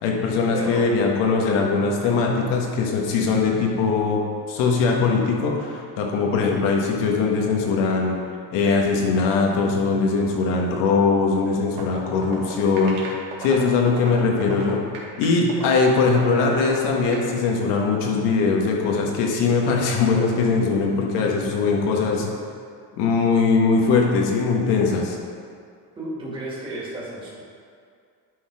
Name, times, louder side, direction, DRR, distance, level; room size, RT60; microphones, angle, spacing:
voice 1, 0.0-4.2 4.5-8.2 8.5-13.1 13.4-14.8 15.2-22.3 23.0-25.2, left 4 dB, 75° left, -1 dB, 1.6 m, -21 dB
voice 2, 0.5-0.9 26.0-27.3, right 1 dB, 10° right, -7 dB, 2.2 m, -32 dB
sound 1, 11.7-17.3, right 6 dB, 65° right, 2.0 m, -35 dB
11.0 x 4.0 x 4.8 m, 2.3 s
cardioid pair, 140°, 42 cm